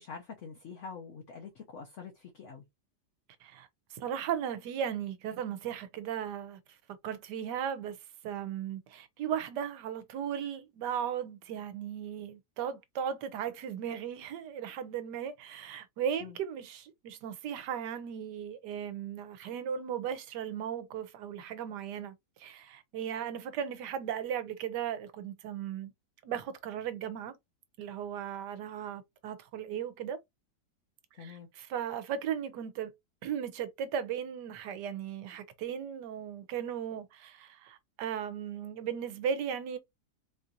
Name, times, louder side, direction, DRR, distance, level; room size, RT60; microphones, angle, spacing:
voice 1, 0.0-2.6 16.2-16.4 31.1-31.5, left 5 dB, 60° left, 0.8 m, -45 dB
voice 2, 3.4-6.6 7.0-8.0 8.2-25.9 26.2-27.4 27.8-30.2 31.2-32.9 33.2-39.8, right 8 dB, 80° right, 1.3 m, -36 dB
4.2 x 2.5 x 2.7 m
omnidirectional pair, 1.8 m